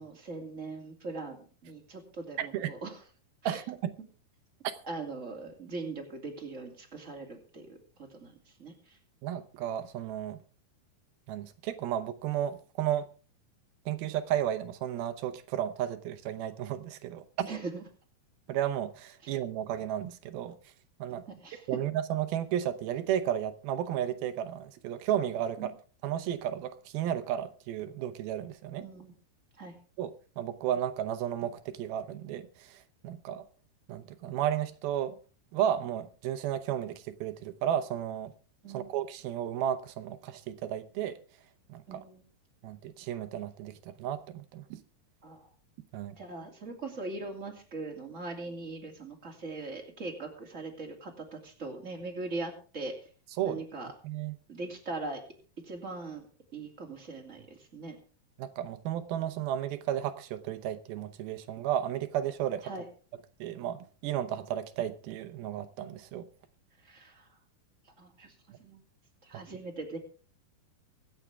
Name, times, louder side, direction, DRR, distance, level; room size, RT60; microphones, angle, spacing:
voice 1, 0.0-3.0 3.4-3.6 4.8-7.8 8.1-8.3 8.6-9.0 17.4-17.8 19.2-19.4 21.3-21.7 25.6-25.7 28.8-29.1 29.6-29.7 38.6-38.9 41.9-42.2 45.2-45.5 46.2-52.9 53.4-53.9 54.5-55.2 55.6-56.3 56.5-58.0 62.6-62.8 66.8-67.3 68.0-68.3 68.6-68.8 69.2-70.0, right 3 dB, 20° right, 2.5 m, -40 dB
voice 2, 2.4-2.7 3.5-4.0 9.2-10.4 11.3-13.1 13.9-17.5 18.5-20.6 21.0-21.2 21.7-25.7 26.0-28.8 30.0-32.8 33.0-33.4 33.9-35.2 35.5-38.3 38.7-41.2 41.7-42.0 42.6-44.6 45.9-46.2 53.4-53.6 54.0-54.3 58.4-62.7 63.4-66.3, right 10 dB, 80° right, 2.7 m, -33 dB
24.0 x 8.2 x 3.5 m
omnidirectional pair, 4.4 m